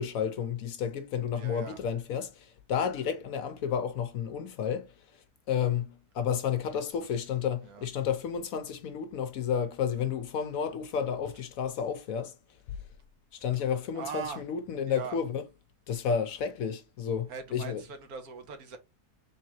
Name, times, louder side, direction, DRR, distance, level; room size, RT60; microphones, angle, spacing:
voice 1, 0.0-12.4 13.3-15.4 15.9-17.8, left 7 dB, 70° left, 1.0 m, -31 dB
voice 2, 1.3-1.8 6.7-6.8 7.6-7.8 13.9-14.4 14.9-15.2 17.3-18.8, right 6 dB, 70° right, 1.4 m, -40 dB
3.7 x 3.2 x 3.0 m
omnidirectional pair, 1.7 m